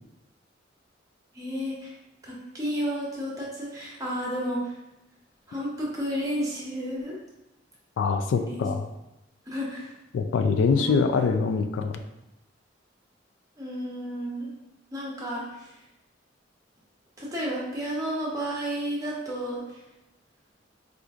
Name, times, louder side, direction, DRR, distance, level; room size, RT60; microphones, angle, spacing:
voice 1, 1.3-1.9 2.2-4.7 5.5-7.2 8.4-8.7 9.5-9.9 10.8-11.3 13.6-14.5 14.9-15.8 17.2-19.8, equal, 20° right, -4 dB, 0.8 m, -32 dB
voice 2, 8.0-8.9 10.1-12.0, left 5 dB, 85° left, 7 dB, 0.3 m, -24 dB
4.4 x 2.5 x 2.4 m, 0.93 s
head